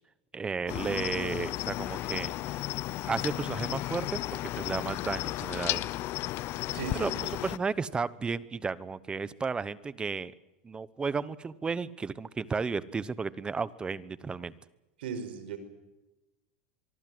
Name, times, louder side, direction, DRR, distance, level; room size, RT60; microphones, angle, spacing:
voice 1, 0.3-2.7 3.1-5.9 7.0-7.2 7.4-10.3 10.6-14.5, right 5 dB, 15° right, 18 dB, 1.0 m, -33 dB
Cricket, 0.7-7.6, left 16 dB, 45° left, 0.8 m, -34 dB
voice 2, 6.7-7.4 15.0-15.6, right 6 dB, 80° right, 10 dB, 5.3 m, -38 dB
24.0 x 23.5 x 7.9 m, 1.0 s
supercardioid pair, 125°, 6 cm